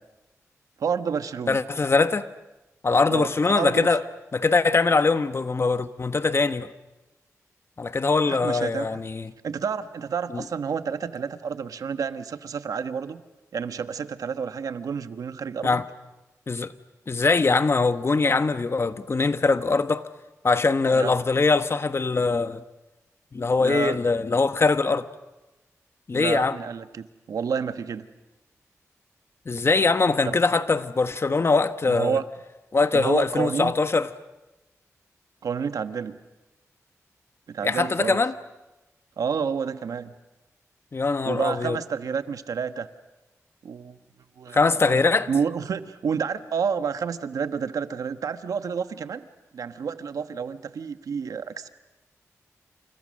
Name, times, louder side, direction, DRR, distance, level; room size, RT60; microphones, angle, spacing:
voice 1, 0.8-1.6 3.1-4.0 8.2-9.0 9.4-13.2 13.5-15.8 20.9-21.1 23.6-24.0 26.1-28.1 30.2-30.4 31.9-32.2 32.9-33.7 35.4-36.2 37.5-38.2 39.2-40.1 41.2-42.9 43.6-44.0 44.4-45.0 45.3-49.3 49.5-51.7, right 6 dB, 85° right, 1.2 m, -29 dB
voice 2, 1.5-2.3 2.8-4.0 4.3-6.7 7.8-9.3 10.3-10.4 15.6-15.9 16.5-16.7 17.1-20.1 20.4-22.6 23.3-25.1 26.1-26.6 29.4-32.2 32.7-34.1 37.6-38.3 40.9-41.8 44.5-45.3, left 4 dB, 45° left, 1.3 m, -22 dB
29.5 x 28.5 x 6.4 m
cardioid pair, 70°, 6 cm